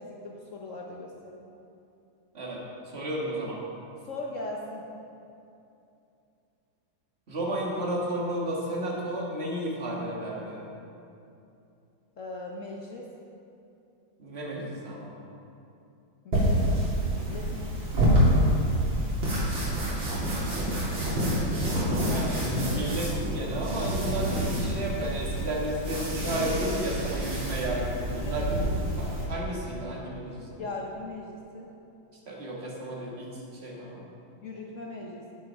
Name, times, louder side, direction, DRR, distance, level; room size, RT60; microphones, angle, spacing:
voice 1, 0.0-1.6 4.0-4.8 12.2-13.1 16.2-16.3 17.1-18.1 21.8-22.4 28.2-28.5 30.6-31.7 34.4-35.3, left 2 dB, 55° left, -1 dB, 0.9 m, -39 dB
voice 2, 2.9-3.6 7.3-10.6 14.2-15.2 22.0-28.5 29.0-30.4 32.3-33.3 33.6-34.1, right 1 dB, 35° right, -4 dB, 1.8 m, -33 dB
sound 1, 16.3-29.2, equal, 85° right, 3.5 m, -27 dB
8.7 x 7.9 x 5.4 m, 2.7 s
omnidirectional pair, 2.1 m